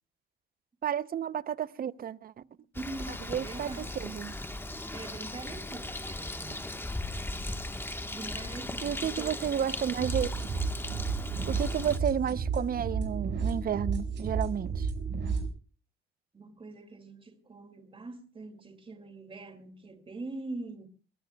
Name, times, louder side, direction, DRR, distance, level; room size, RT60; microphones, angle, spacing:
voice 1, 0.8-2.4 3.3-4.3 8.8-10.3 11.5-14.9, right 9 dB, 50° right, 0.7 m, -32 dB
voice 2, 2.4-4.1 4.9-6.7 8.1-9.4 16.3-20.9, right 3 dB, 25° right, 2.4 m, -43 dB
Bird, 2.7-12.0, left 2 dB, 10° left, 1.3 m, -38 dB
sound 1, 10.0-15.5, right 5 dB, 65° right, 5.7 m, -32 dB
22.5 x 21.0 x 2.3 m
cardioid pair, 90°, 20 cm